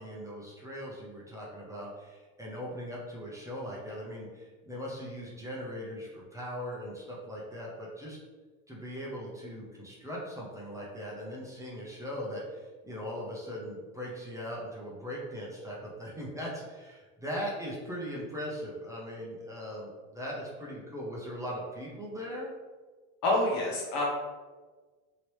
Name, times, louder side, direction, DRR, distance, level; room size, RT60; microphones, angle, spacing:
voice 1, 0.0-8.2 8.7-22.5, equal, 10° right, -5 dB, 0.6 m, -39 dB
voice 2, 23.2-24.0, left 1 dB, 65° left, -2 dB, 1.2 m, -27 dB
2.9 x 2.9 x 3.1 m, 1.4 s
cardioid pair, 130°, 34 cm